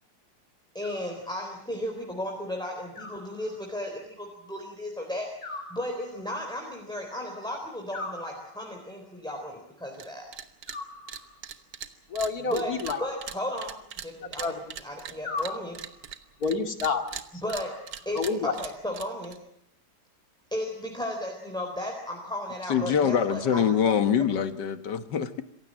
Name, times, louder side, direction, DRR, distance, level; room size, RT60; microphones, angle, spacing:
voice 1, 0.7-10.2 12.5-12.7 13.0-13.8 14.0-15.8 17.4-17.7 18.1-19.3 20.5-24.0, left 1 dB, ahead, 0 dB, 3.9 m, -35 dB
Animal, 0.8-1.7 2.9-4.0 5.4-6.5 7.9-8.9 10.7-11.6 12.9-14.0 15.2-16.2 17.5-18.4, left 3 dB, 90° left, 4.3 m, -41 dB
sound 1, 9.9-10.1 10.3-10.8 11.1-16.5 16.8-19.4, right 8 dB, 70° right, 1.7 m, -40 dB
voice 2, 12.1-13.0 14.2-14.7 16.4-17.0 17.4-17.5 18.1-18.5, left 4 dB, 55° left, 6 dB, 2.6 m, -28 dB
voice 3, 22.7-25.4, left 7 dB, 75° left, 11 dB, 2.0 m, -24 dB
26.5 x 16.0 x 7.6 m, 0.78 s
omnidirectional pair, 1.9 m